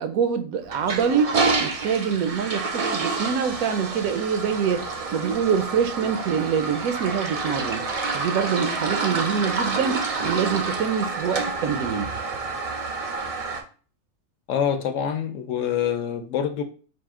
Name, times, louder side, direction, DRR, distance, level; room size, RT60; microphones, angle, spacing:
voice 1, 0.0-7.9 8.1-12.1, right 7 dB, 90° right, 1.1 m, -25 dB
Toilet flush, 0.7-13.6, right 4 dB, 65° right, 0.3 m, -28 dB
voice 2, 14.5-16.6, left 8 dB, 70° left, 0.9 m, -25 dB
4.9 x 2.5 x 3.5 m
omnidirectional pair, 1.4 m